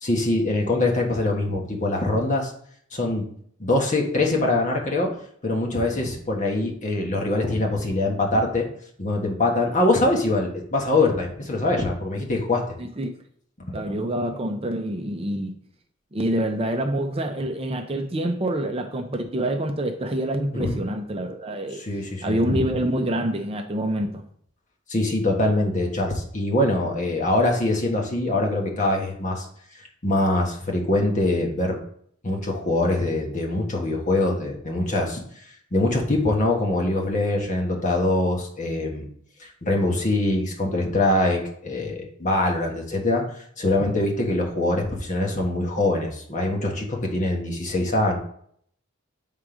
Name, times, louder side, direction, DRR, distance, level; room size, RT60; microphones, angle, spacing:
voice 1, 0.0-2.5 2.9-3.3 3.6-5.1 5.4-8.7 9.0-12.6 13.7-14.0 20.5-20.8 21.7-22.7 24.9-29.5 30.0-31.8 32.2-35.2 35.7-39.1 39.4-43.2 43.6-48.2, left 2 dB, 40° left, 0 dB, 1.4 m, -23 dB
voice 2, 12.8-13.1 13.7-15.5 16.1-21.8 22.2-24.2, right 1 dB, 30° right, 5 dB, 0.6 m, -26 dB
7.4 x 3.7 x 4.9 m, 0.63 s
head